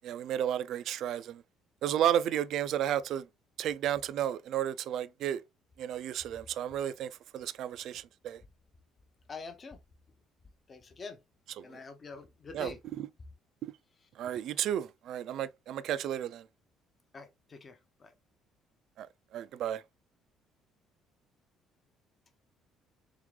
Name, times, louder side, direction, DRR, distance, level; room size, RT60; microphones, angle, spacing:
voice 1, 0.0-1.4 1.8-3.2 3.6-5.4 5.8-8.4 12.5-12.7 13.0-13.1 14.2-16.4 19.0-19.1 19.3-19.8, right 10 dB, 55° right, 0.3 m, -32 dB
voice 2, 9.3-9.8 10.7-11.2 11.6-12.8 14.0-14.1 17.1-18.1, left 4 dB, 25° left, 0.6 m, -46 dB
3.6 x 3.6 x 3.2 m
cardioid pair, 175°, 0 cm